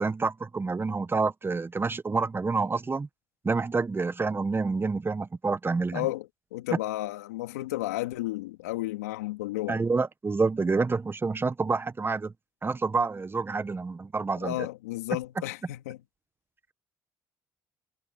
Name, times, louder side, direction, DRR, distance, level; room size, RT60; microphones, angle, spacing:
voice 1, 0.0-3.1 3.4-6.0 9.7-12.3 12.6-14.7, right 4 dB, 30° right, 1.4 m, -28 dB
voice 2, 5.9-9.8 14.4-16.0, left 17 dB, 90° left, 3.0 m, -33 dB
hypercardioid pair, 50°, 8 cm